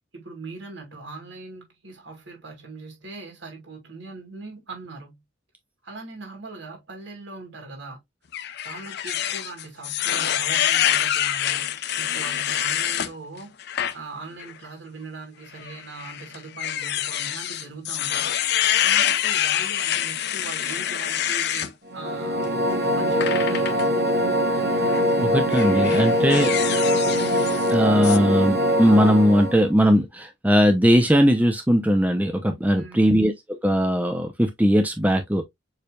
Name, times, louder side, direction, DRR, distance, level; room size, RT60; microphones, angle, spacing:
voice 1, 0.1-5.2 5.8-8.0 8.6-13.5 13.9-18.4 18.8-22.5 22.9-24.0 32.7-33.1, right 3 dB, 70° right, 2.2 m, -40 dB
sound 1, 8.3-13.1 13.6-13.9 14.4-14.5 15.6-21.7 23.2-23.8 24.8-25.0 25.5-27.7 28.0-28.2, left 11 dB, 60° left, 0.5 m, -26 dB
sound 2, 21.9-29.7, equal, 55° right, 1.2 m, -22 dB
voice 2, 25.2-26.5 27.7-33.3 33.6-35.4, equal, 10° right, 0.6 m, -19 dB
6.8 x 3.3 x 2.3 m
head